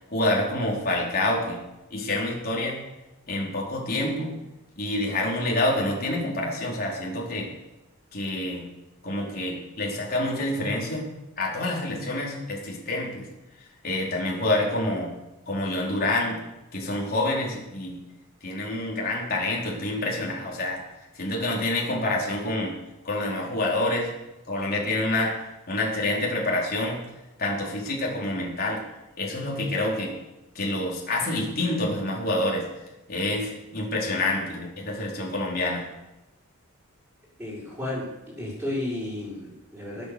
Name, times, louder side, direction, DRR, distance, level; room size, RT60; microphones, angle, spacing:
voice 1, 0.1-1.6 1.9-2.8 3.3-4.3 4.8-7.5 8.1-8.6 9.0-11.0 11.4-13.3 13.8-15.1 15.5-16.4 16.7-18.0 18.4-20.8 21.2-22.8 23.0-24.1 24.5-25.3 25.7-27.0 27.4-28.8 29.2-30.2 30.5-32.6 33.1-35.8, left 1 dB, 45° left, -3 dB, 4.5 m, -27 dB
voice 2, 37.4-40.1, left 1 dB, 5° right, -9 dB, 5.9 m, -33 dB
20.0 x 8.3 x 7.1 m, 0.98 s
head